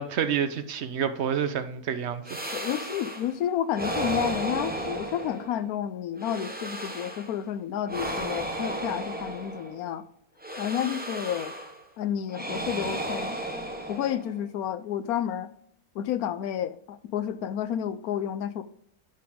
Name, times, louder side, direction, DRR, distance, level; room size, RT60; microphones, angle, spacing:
voice 1, 0.0-2.4, right 7 dB, 55° right, 0.9 m, -28 dB
sound 1, 2.3-3.3 3.7-5.7 6.2-7.4 7.9-9.9 10.4-11.8 12.3-14.4, right 1 dB, 10° right, 0.8 m, -34 dB
voice 2, 2.5-10.0 10.6-11.5 12.0-13.4 13.9-15.5 16.0-18.6, left 10 dB, 80° left, 1.1 m, -30 dB
10.5 x 4.5 x 3.6 m
omnidirectional pair, 1.6 m